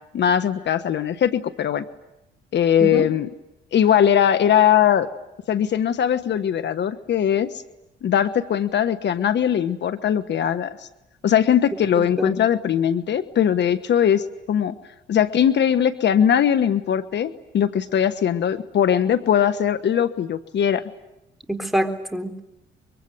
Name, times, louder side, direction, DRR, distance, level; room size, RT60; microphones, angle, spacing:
voice 1, 0.1-1.8 2.5-3.3 3.7-5.1 5.5-7.5 8.0-10.9 11.2-14.7 15.1-20.8, left 9 dB, 65° left, 11 dB, 1.3 m, -20 dB
voice 2, 12.0-12.4 21.5-22.4, right 1 dB, ahead, 5 dB, 3.9 m, -26 dB
24.0 x 24.0 x 10.0 m, 0.89 s
cardioid pair, 90°, 20 cm